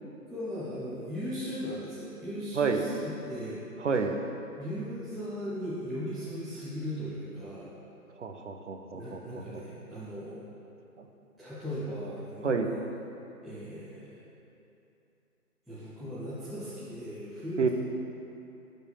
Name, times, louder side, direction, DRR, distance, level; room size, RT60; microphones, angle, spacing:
voice 1, 0.3-3.6 4.6-7.7 8.9-10.4 11.4-12.8 13.4-14.1 15.7-17.7, equal, ahead, -13 dB, 0.4 m, -38 dB
voice 2, 3.8-4.1 8.2-9.4 11.0-11.1 12.4-12.8 17.6-17.7, right 5 dB, 50° right, 5 dB, 0.5 m, -29 dB
5.5 x 4.5 x 5.3 m, 2.8 s
hypercardioid pair, 165°, 46 cm